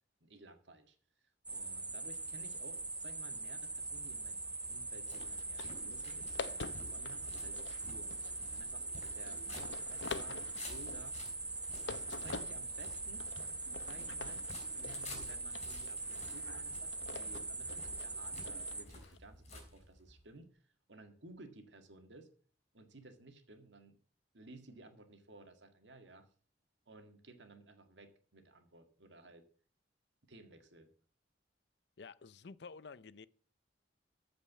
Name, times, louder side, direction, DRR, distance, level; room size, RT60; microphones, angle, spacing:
voice 1, 0.2-1.0 1.5-4.4 4.7-11.2 11.9-13.4 13.8-14.4 14.7-22.3 22.7-24.0 24.3-26.3 26.9-29.4 30.3-30.9, right 2 dB, 80° right, 2.1 m, -56 dB
sound 1, 1.5-18.8, right 3 dB, 10° right, 0.5 m, -42 dB
sound 2, 3.7-20.3, left 2 dB, 35° left, 3.8 m, -53 dB
sound 3, 5.2-19.2, left 4 dB, 85° left, 0.9 m, -49 dB
voice 2, 32.0-33.3, left 4 dB, 65° left, 0.5 m, -51 dB
14.0 x 5.2 x 7.4 m
head